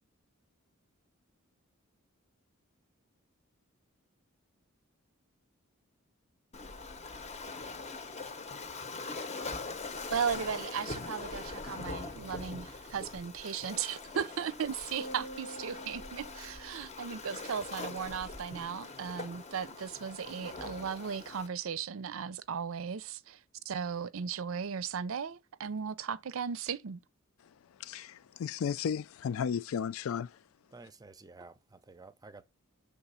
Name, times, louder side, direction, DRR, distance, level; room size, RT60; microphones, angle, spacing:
Waves surf, 6.5-21.5, left 3 dB, 30° left, 0.7 m, -42 dB
voice 1, 10.1-23.4 23.7-27.0, right 7 dB, 70° right, 0.5 m, -36 dB
sound 1, 15.0-17.5, right 1 dB, 90° left, 1.3 m, -47 dB
voice 2, 27.8-30.4, left 7 dB, 70° left, 0.3 m, -34 dB
voice 3, 30.7-32.4, right 3 dB, 20° right, 0.5 m, -52 dB
6.0 x 3.5 x 5.5 m
head